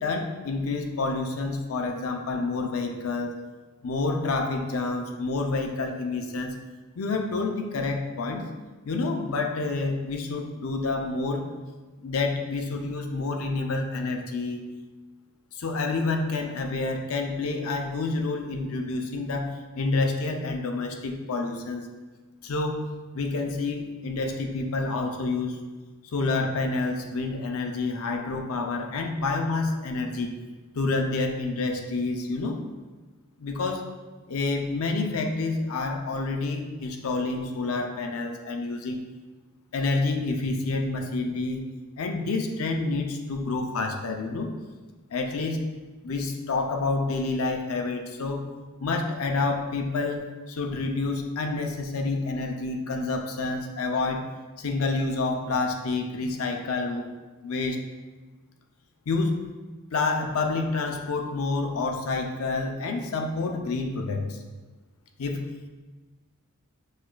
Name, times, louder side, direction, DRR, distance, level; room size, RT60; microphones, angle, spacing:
voice 1, 0.0-3.3 3.8-6.5 7.0-8.4 8.9-11.5 12.0-14.6 15.6-21.8 22.4-25.6 26.1-30.3 30.7-32.6 33.4-33.9 34.3-39.0 39.7-41.6 42.0-44.5 45.1-45.6 46.0-48.5 48.8-54.3 54.6-57.1 57.4-57.8 59.1-59.4 59.9-64.4 65.2-65.5, left 3 dB, 70° left, 3 dB, 0.5 m, -28 dB
6.2 x 2.4 x 2.2 m, 1.3 s
head